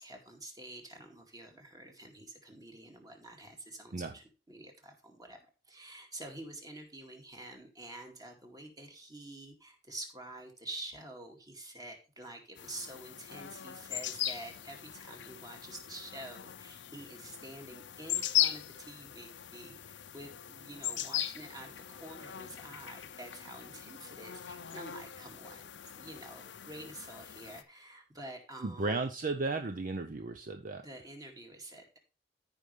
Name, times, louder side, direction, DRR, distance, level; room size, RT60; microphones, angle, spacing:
voice 1, 0.0-5.4 5.7-25.7 26.0-29.1 30.8-32.0, right 1 dB, 20° right, 2 dB, 2.1 m, -48 dB
sound 1, 12.6-27.6, left 12 dB, 75° left, 0.6 m, -39 dB
voice 2, 28.6-30.8, right 3 dB, 45° right, 7 dB, 0.6 m, -34 dB
14.5 x 5.4 x 3.2 m, 0.31 s
head